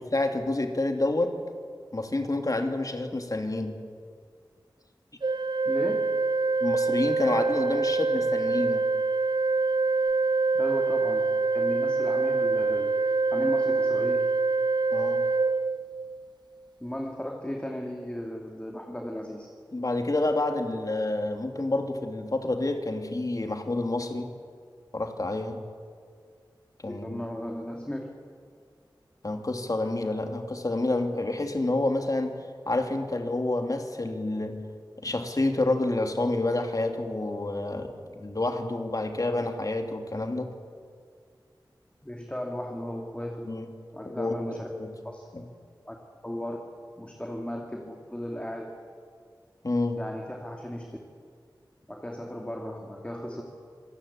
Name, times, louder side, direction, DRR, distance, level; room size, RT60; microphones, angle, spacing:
voice 1, 0.1-1.3 1.9-3.8 6.6-8.9 14.9-15.2 19.7-24.3 24.9-25.6 26.8-27.2 29.2-32.3 32.7-34.6 35.0-40.5 43.5-43.7 44.0-44.9 45.3-45.4 49.6-50.0, left 2 dB, 45° left, 5 dB, 2.7 m, -28 dB
Organ, 5.2-16.3, right 3 dB, 65° right, 0.6 m, -25 dB
voice 2, 5.6-6.1 10.5-14.4 16.8-19.5 26.9-28.1 42.0-43.6 43.9-44.7 45.0-45.3 45.9-46.0 46.2-46.6 47.0-48.8 50.0-51.0 51.9-53.4, equal, 15° left, 1 dB, 2.7 m, -36 dB
26.0 x 18.0 x 8.6 m, 2.1 s
wide cardioid pair, 50°, 8 cm